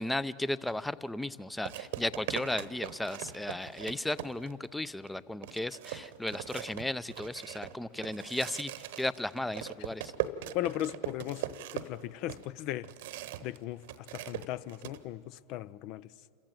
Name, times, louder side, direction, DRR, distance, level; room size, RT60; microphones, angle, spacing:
voice 1, 0.0-8.7 9.0-10.1, left 1 dB, 5° left, 0.6 m, -35 dB
sound 1, 0.7-0.8 1.7-4.7 5.1-5.2 5.4-13.6 13.8-15.0, right 12 dB, 65° right, 1.0 m, -40 dB
voice 2, 10.5-11.5 11.7-12.9 13.4-16.1, left 14 dB, 50° left, 0.5 m, -37 dB
27.0 x 14.5 x 9.0 m
hypercardioid pair, 90°, 0 cm